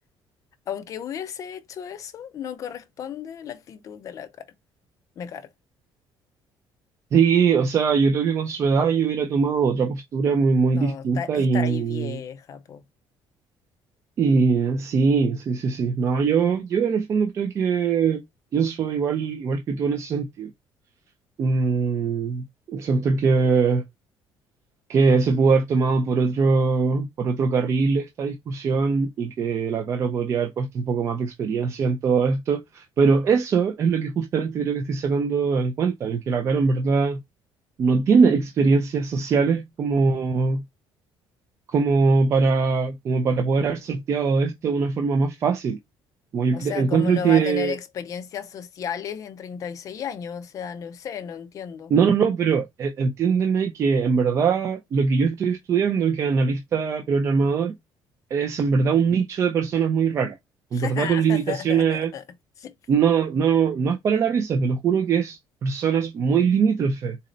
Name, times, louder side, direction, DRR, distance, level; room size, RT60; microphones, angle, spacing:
voice 1, 0.7-4.5 5.2-5.5 10.7-12.8 46.5-51.9 60.7-62.2 62.6-62.7, left 7 dB, 40° left, 0.4 m, -34 dB
voice 2, 7.1-12.2 14.2-18.2 18.5-20.5 21.4-23.8 24.9-37.2 37.8-40.6 41.7-45.8 46.3-47.8 51.9-57.7 58.3-60.4 60.7-62.1 62.9-67.2, right 5 dB, 35° right, 0.4 m, -22 dB
4.0 x 2.0 x 3.7 m
cardioid pair, 180°, 9 cm